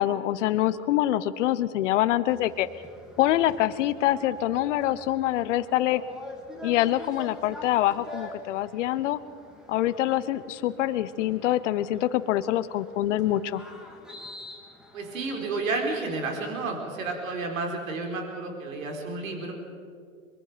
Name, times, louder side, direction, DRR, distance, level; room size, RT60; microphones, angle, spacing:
voice 1, 0.0-2.7 3.2-6.0 6.6-9.2 9.7-13.6, left 13 dB, 65° left, 14 dB, 1.1 m, -25 dB
sound 1, 2.3-16.4, left 1 dB, ahead, 3.2 m, -46 dB
voice 2, 14.9-19.5, right 3 dB, 80° right, 2 dB, 4.5 m, -31 dB
23.5 x 23.0 x 5.2 m, 2.2 s
hypercardioid pair, 115°, 40 cm